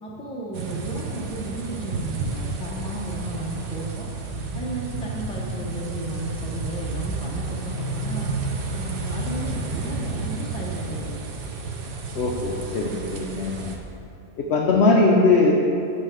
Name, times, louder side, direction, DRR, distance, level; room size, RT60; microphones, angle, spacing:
voice 1, 0.0-4.1 4.5-8.3 8.7-11.2, right 1 dB, 5° left, -3 dB, 0.4 m, -34 dB
sound 1, 0.5-13.8, right 3 dB, 75° right, 0.5 m, -31 dB
voice 2, 12.1-13.8 14.4-15.5, left 3 dB, 75° left, 0 dB, 0.6 m, -20 dB
8.0 x 3.3 x 5.9 m, 2.7 s
omnidirectional pair, 1.7 m